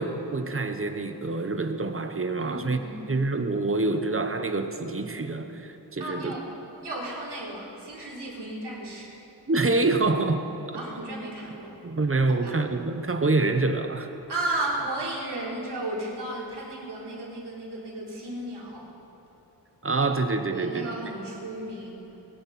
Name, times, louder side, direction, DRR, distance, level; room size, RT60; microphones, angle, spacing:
voice 1, 0.0-2.8 3.1-6.3 9.5-10.8 11.8-14.1 19.8-20.9, right 3 dB, 30° right, 7 dB, 1.0 m, -26 dB
voice 2, 2.4-3.2 6.0-6.5 6.8-9.1 10.7-11.8 12.3-12.6 14.3-18.9 20.5-22.0, right 1 dB, 75° right, -5 dB, 3.7 m, -34 dB
21.5 x 11.0 x 4.3 m, 3.0 s
wide cardioid pair, 80°, 42 cm